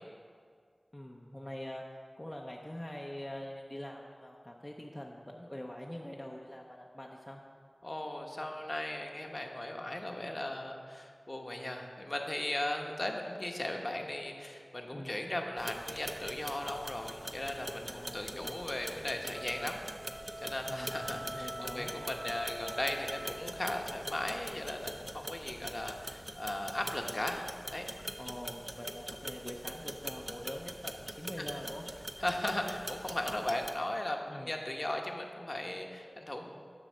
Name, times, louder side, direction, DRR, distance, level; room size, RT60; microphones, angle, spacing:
voice 1, 0.9-1.8 2.2-7.4 14.9-15.2 17.9-18.6 20.6-21.9 28.2-31.9 34.3-34.5, left 1 dB, 20° left, -1 dB, 0.6 m, -44 dB
voice 2, 7.8-19.8 20.4-27.9 31.4-31.5 32.2-36.5, left 1 dB, 40° left, 3 dB, 0.9 m, -37 dB
sound 1, 15.6-33.7, right 1 dB, 20° right, 0.6 m, -43 dB
sound 2, 19.3-23.8, right 1 dB, 65° right, 0.8 m, -45 dB
10.0 x 4.0 x 6.4 m, 2.1 s
wide cardioid pair, 50°, 0 cm